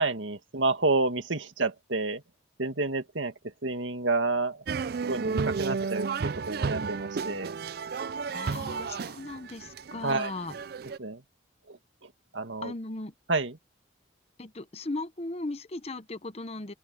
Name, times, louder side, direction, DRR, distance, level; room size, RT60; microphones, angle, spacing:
voice 1, 0.0-2.2 2.6-4.6 5.0-7.6 10.0-10.3 11.0-11.2 11.7-12.7 13.3-13.6, right 3 dB, 75° right, 2.0 m, -30 dB
sound 1, 4.7-11.0, right 5 dB, 50° right, 0.4 m, -33 dB
voice 2, 8.3-10.5 12.6-13.1 14.4-16.7, left 2 dB, 30° left, 0.9 m, -37 dB
open air
head